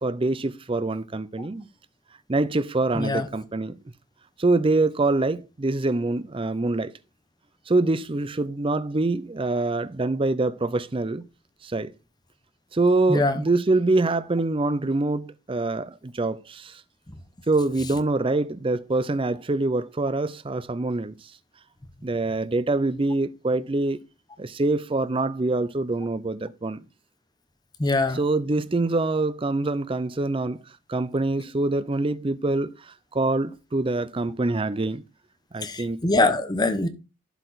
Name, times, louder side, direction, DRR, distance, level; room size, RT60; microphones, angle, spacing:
voice 1, 0.0-1.7 2.3-3.8 4.4-6.9 7.7-11.3 11.6-11.9 12.7-16.8 17.5-21.3 22.0-24.0 24.4-26.8 28.1-30.6 30.9-35.0 35.5-36.0, right 2 dB, 25° right, 0.5 m, -25 dB
voice 2, 2.9-3.3 13.1-13.4 27.8-28.2 35.6-36.9, left 2 dB, 20° left, 0.8 m, -23 dB
11.5 x 4.8 x 4.0 m
head